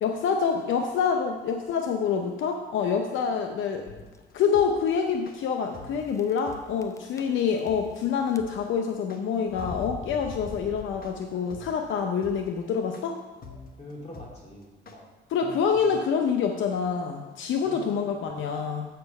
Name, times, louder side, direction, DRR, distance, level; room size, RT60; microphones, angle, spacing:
voice 1, 0.0-3.8 4.3-13.2 15.3-18.9, left 6 dB, 75° left, 4 dB, 0.7 m, -26 dB
sound 1, 3.7-4.2 4.8-4.9 5.1-5.2 6.1-6.5 6.8-8.0 8.3-8.8 9.5-11.4, left 4 dB, 15° left, 0.5 m, -42 dB
sound 2, 3.9-15.0, left 4 dB, 50° left, 1.2 m, -46 dB
voice 2, 13.8-15.0 15.4-15.9 17.6-18.6, left 1 dB, 35° left, -3 dB, 3.0 m, -44 dB
7.8 x 6.8 x 5.3 m, 1.2 s
cardioid pair, 90°, 20 cm